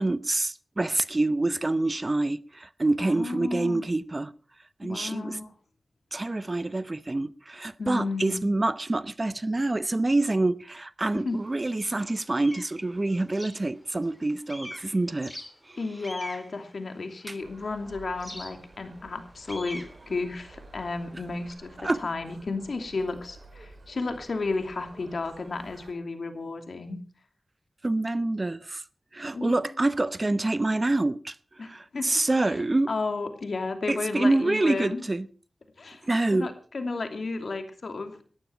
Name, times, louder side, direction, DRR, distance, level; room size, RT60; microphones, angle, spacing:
voice 1, 0.0-4.3 4.8-5.4 6.1-15.3 15.7-15.8 17.3-17.4 21.8-22.0 27.8-28.8 29.1-32.9 33.9-35.3 36.0-36.5, right 2 dB, 35° right, 0.8 m, -26 dB
voice 2, 3.0-3.8 4.8-5.5 7.8-8.5 11.1-11.4 15.8-27.0 29.3-29.6 31.6-32.1 32.4-32.5 32.9-35.0 35.8-38.2, left 3 dB, 70° left, 2.8 m, -33 dB
sound 1, 11.3-11.4 11.9-14.2 14.5-17.6 18.2-21.5, equal, 10° left, 3.6 m, -44 dB
sound 2, 17.4-25.9, right 3 dB, 60° right, 3.1 m, -51 dB
18.5 x 14.0 x 4.6 m
wide cardioid pair, 75°, 0 cm